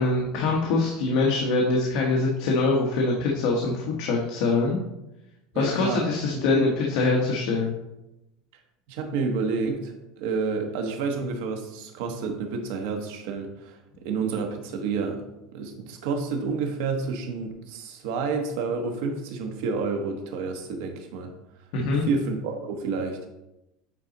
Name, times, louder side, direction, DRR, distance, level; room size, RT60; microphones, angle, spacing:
voice 1, 0.0-4.8 5.5-6.7 7.0-7.8 21.7-22.0, left 3 dB, 60° left, -1 dB, 1.1 m, -24 dB
voice 2, 5.5-6.7 8.9-15.2 15.5-21.3 22.0-23.3, right 4 dB, 70° right, 4 dB, 1.2 m, -29 dB
8.8 x 4.1 x 4.0 m, 0.92 s
cardioid pair, 165°, 0 cm